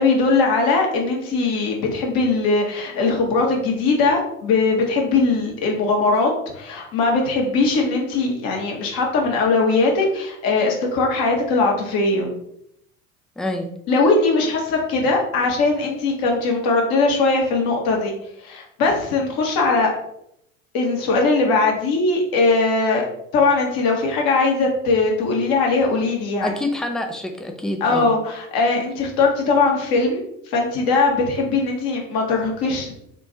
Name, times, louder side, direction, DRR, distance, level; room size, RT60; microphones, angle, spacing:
voice 1, 0.0-12.3 13.9-18.1 18.4-19.9 20.7-23.0 23.3-26.5 27.8-32.9, left 3 dB, 55° left, 1 dB, 1.3 m, -20 dB
voice 2, 13.4-13.7 26.4-28.1, left 1 dB, ahead, 4 dB, 0.3 m, -26 dB
3.6 x 2.5 x 3.9 m, 0.75 s
hypercardioid pair, 70°, 42 cm